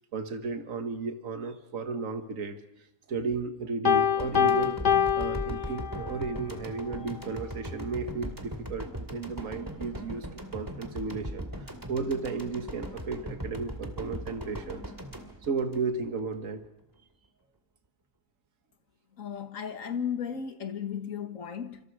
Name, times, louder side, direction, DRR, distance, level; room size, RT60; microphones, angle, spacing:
voice 1, 0.1-2.6 3.1-4.8 5.2-11.5 11.9-14.8 15.4-16.6, right 4 dB, 70° right, 1.9 m, -34 dB
Piano, 3.9-6.2, left 8 dB, 40° left, 0.9 m, -25 dB
sound 1, 4.2-16.4, right 1 dB, 15° right, 2.3 m, -39 dB
voice 2, 19.2-21.8, left 7 dB, 70° left, 1.8 m, -35 dB
26.5 x 26.0 x 4.8 m
omnidirectional pair, 1.5 m